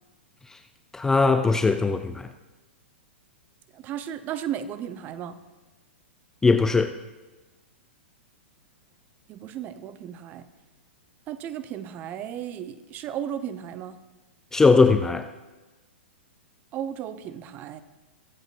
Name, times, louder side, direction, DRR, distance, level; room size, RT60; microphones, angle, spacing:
voice 1, 0.9-2.3 6.4-7.0 14.5-15.3, left 4 dB, 10° left, 0.3 m, -20 dB
voice 2, 3.7-5.4 9.3-10.5 11.3-14.0 16.7-17.8, right 10 dB, 30° right, 0.6 m, -34 dB
21.5 x 7.9 x 2.5 m
figure-of-eight pair, 105°, 6 cm